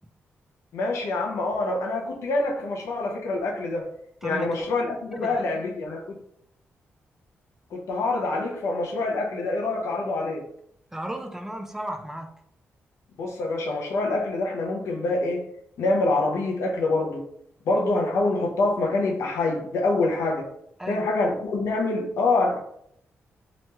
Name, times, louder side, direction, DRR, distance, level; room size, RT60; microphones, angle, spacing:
voice 1, 0.7-3.9 4.2-6.2 7.7-10.5 13.2-15.5 15.8-17.2 17.6-20.5 20.9-22.6, left 2 dB, 90° left, 0.6 m, -26 dB
voice 2, 5.1-5.7 10.9-12.4 20.8-21.1, right 1 dB, 10° right, 0.3 m, -35 dB
2.9 x 2.9 x 2.2 m
wide cardioid pair, 120°, 5 cm